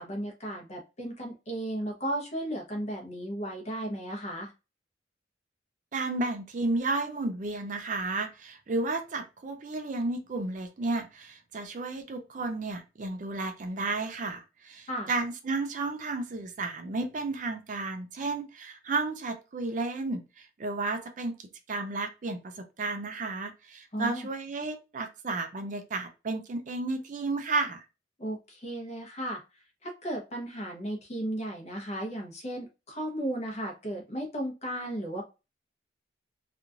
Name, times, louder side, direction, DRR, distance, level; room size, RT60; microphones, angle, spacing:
voice 1, 0.0-4.5 14.9-15.1 23.9-24.3 28.2-29.4 29.8-35.2, right 1 dB, 35° left, 1 dB, 0.9 m, -35 dB
voice 2, 5.9-21.4 21.7-27.8, right 3 dB, 45° right, 6 dB, 0.4 m, -32 dB
3.0 x 2.5 x 2.4 m, 0.28 s
head